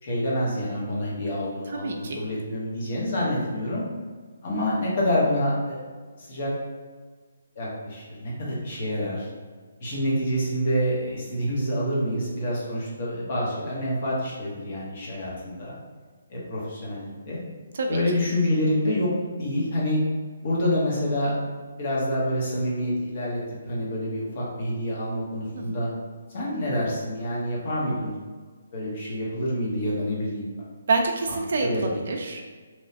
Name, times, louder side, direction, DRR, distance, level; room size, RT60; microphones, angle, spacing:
voice 1, 0.0-3.8 4.4-5.8 6.2-6.5 7.6-9.3 9.8-15.8 16.3-17.4 17.9-19.1 19.4-20.0 20.4-21.4 21.8-25.9 26.3-28.1 28.7-30.5 31.3-31.9, equal, 35° left, -5 dB, 0.8 m, -27 dB
voice 2, 1.7-2.2 17.7-18.0 25.5-25.8 30.9-32.5, right 3 dB, 50° right, 2 dB, 0.3 m, -27 dB
3.0 x 2.0 x 2.7 m, 1.5 s
hypercardioid pair, 170°, 0 cm